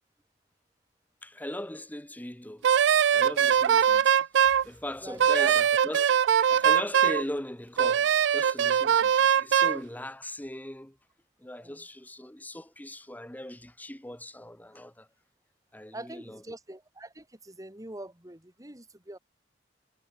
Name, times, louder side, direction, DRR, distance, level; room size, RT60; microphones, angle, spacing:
voice 1, 1.2-2.7 3.0-11.0 11.4-15.1 15.7-16.4, left 1 dB, 10° left, 1.5 m, -39 dB
Wind instrument woodwind instrument, 2.6-4.6 5.2-7.2 7.8-9.8, right 8 dB, 80° right, 0.4 m, -22 dB
voice 2, 5.0-5.5 11.5-11.8 15.9-19.2, right 1 dB, 20° right, 3.1 m, -43 dB
head